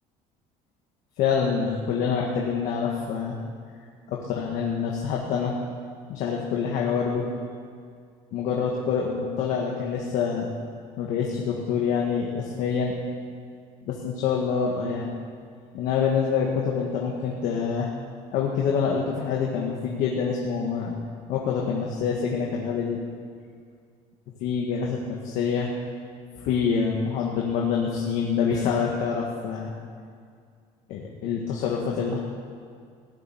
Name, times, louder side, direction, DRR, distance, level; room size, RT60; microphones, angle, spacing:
voice 1, 1.2-3.4 4.1-5.5 6.1-7.3 8.3-10.5 11.0-13.0 13.9-15.1 15.7-17.9 18.3-20.9 21.3-23.0 24.4-25.7 26.4-29.7 30.9-32.2, left 6 dB, 65° left, -2 dB, 1.9 m, -26 dB
17.5 x 7.6 x 10.0 m, 2.2 s
cardioid pair, 175°, 13 cm